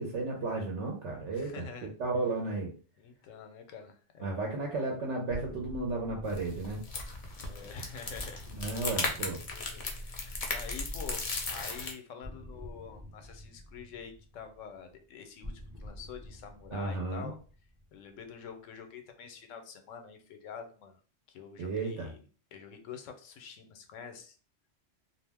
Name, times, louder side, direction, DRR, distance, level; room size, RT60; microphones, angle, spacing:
voice 1, 0.0-2.7 4.2-6.8 8.5-9.4 16.7-17.3 21.6-22.1, right 3 dB, 70° right, 0 dB, 0.9 m, -34 dB
voice 2, 1.3-1.9 3.0-4.5 7.3-8.4 9.5-11.2 11.5-17.4 17.9-21.0 21.3-22.2 22.5-24.4, left 6 dB, 85° left, 6 dB, 0.9 m, -47 dB
sound 1, 5.3-11.0 12.2-18.5, left 1 dB, 30° right, 0.4 m, -49 dB
sound 2, 6.2-11.9, left 3 dB, 45° left, 0.5 m, -37 dB
2.4 x 2.0 x 3.3 m, 0.38 s
omnidirectional pair, 1.3 m